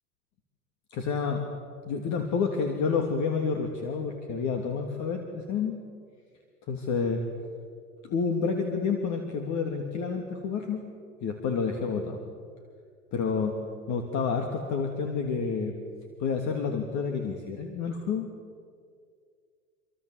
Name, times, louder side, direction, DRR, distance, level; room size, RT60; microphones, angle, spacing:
voice 1, 0.9-1.5 1.8-5.8 6.7-7.3 8.0-10.8 11.2-12.2 13.1-13.6 13.9-15.7 16.2-18.3, left 5 dB, 40° left, 4 dB, 3.0 m, -29 dB
27.0 x 25.5 x 8.1 m, 2.1 s
hypercardioid pair, 95°, 45 cm